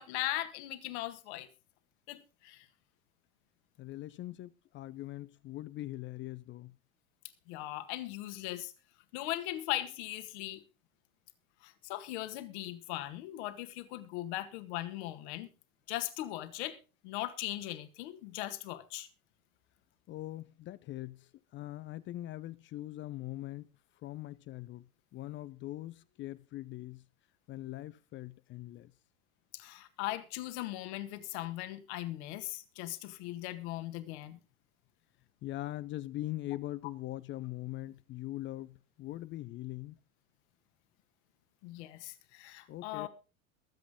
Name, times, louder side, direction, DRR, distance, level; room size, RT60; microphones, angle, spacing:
voice 1, 0.0-1.5 2.1-2.7 7.5-8.7 9.1-10.6 11.6-15.5 15.9-16.8 17.0-19.1 29.5-34.4 41.6-43.1, left 15 dB, 50° left, 1.9 m, -39 dB
voice 2, 3.8-6.8 20.1-23.7 24.0-27.1 27.5-28.9 35.4-40.0 42.7-43.1, left 15 dB, 30° left, 0.6 m, -42 dB
22.5 x 8.1 x 3.7 m
figure-of-eight pair, 80°, 42 cm